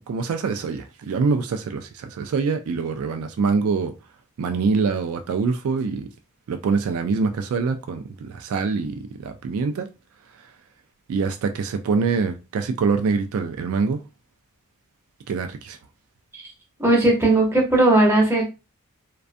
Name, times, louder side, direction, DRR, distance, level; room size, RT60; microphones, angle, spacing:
voice 1, 0.1-3.9 4.4-6.1 6.5-9.9 11.1-14.0 15.3-15.8, right 5 dB, 75° right, 0.3 m, -24 dB
voice 2, 16.8-18.4, right 2 dB, 10° right, 0.7 m, -17 dB
2.4 x 2.2 x 2.5 m
head